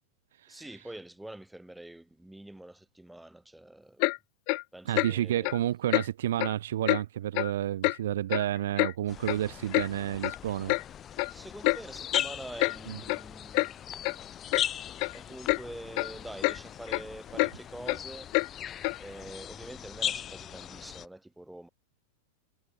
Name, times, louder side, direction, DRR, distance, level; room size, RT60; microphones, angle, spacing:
voice 1, 0.5-4.1 4.7-5.5 11.3-13.8 15.1-21.7, right 1 dB, 5° right, 7.9 m, -45 dB
Clock, 4.0-4.2 4.5-4.6 4.9-5.1 5.4-5.6 5.9-6.1 6.4-6.5 6.9-7.0 7.3-7.5 7.8-8.0 8.3-8.9 9.3-9.4 9.7-9.9 10.2-10.4 10.7-10.8 11.2-11.3 11.6-11.8 12.1-12.3 12.6-12.8 13.1-13.2 13.5-13.7 14.0-14.1 14.5-14.7 15.0-15.2 15.5-15.6 16.0-16.1 16.4-16.6 16.9-17.0 17.4-17.5 17.9-18.0 18.3-18.5 18.8-19.0, left 40 dB or more, 45° left, 0.5 m, -27 dB
voice 2, 4.9-10.7 12.9-13.0, right 12 dB, 60° right, 0.8 m, -30 dB
sound 1, 9.1-21.1, left 10 dB, 25° left, 2.3 m, -39 dB
figure-of-eight pair, 90°, 0 cm